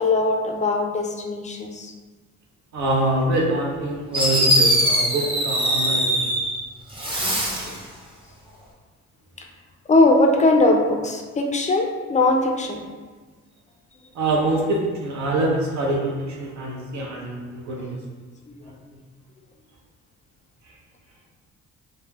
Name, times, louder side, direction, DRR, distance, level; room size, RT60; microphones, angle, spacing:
voice 1, 0.0-1.9 7.0-7.8 9.9-12.8 18.5-18.6, left 2 dB, 25° left, 2 dB, 0.4 m, -20 dB
voice 2, 2.7-6.3 14.1-18.0, right 1 dB, 70° right, -1 dB, 0.7 m, -24 dB
Fireworks, 3.7-3.8 4.1-6.6 6.9-7.8, equal, 15° right, 0.6 m, -21 dB
2.2 x 2.1 x 3.2 m, 1.4 s
cardioid pair, 90°, 30 cm